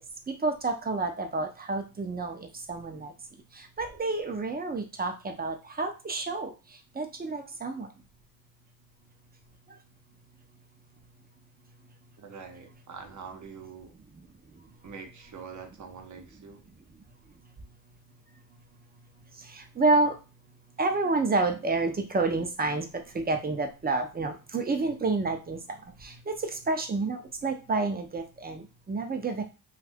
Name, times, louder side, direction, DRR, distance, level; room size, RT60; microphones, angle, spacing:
voice 1, 0.4-3.1 3.5-6.5 7.0-7.9 19.5-20.2 20.8-29.4, right 3 dB, 25° right, 6 dB, 0.6 m, -29 dB
voice 2, 12.2-13.9 14.8-16.6, right 6 dB, 50° right, 4 dB, 0.9 m, -44 dB
2.6 x 2.4 x 3.4 m, 0.31 s
cardioid pair, 75°, 38 cm